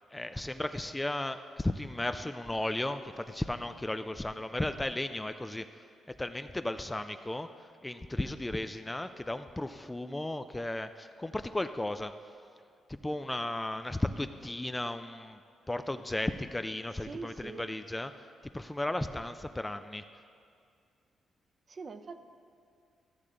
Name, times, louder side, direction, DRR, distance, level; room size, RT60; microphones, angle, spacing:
voice 1, 0.1-12.1 12.9-15.4 15.7-18.3 18.5-20.0, left 1 dB, 15° left, 9 dB, 0.3 m, -35 dB
voice 2, 17.1-17.7 21.7-22.2, right 4 dB, 40° right, 8 dB, 0.5 m, -42 dB
13.5 x 6.6 x 3.7 m, 2.3 s
cardioid pair, 85°, 0 cm